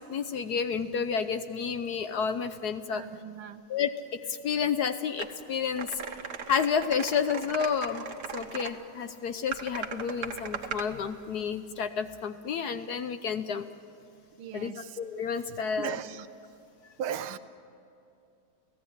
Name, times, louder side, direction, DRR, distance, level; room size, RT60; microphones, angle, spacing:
voice 1, 0.0-3.0 3.7-3.9 4.3-6.0 6.5-8.0 8.3-13.6 14.5-14.7 15.0-15.9, left 6 dB, 60° left, 10 dB, 1.1 m, -30 dB
voice 2, 2.9-3.7 14.4-15.0 15.5-16.3 17.0-17.4, right 9 dB, 90° right, 12 dB, 1.8 m, -38 dB
sound 1, 5.2-5.3 5.8-8.7 9.5-10.9, right 6 dB, 55° right, 1.8 m, -38 dB
29.5 x 16.5 x 9.9 m, 2.6 s
omnidirectional pair, 2.2 m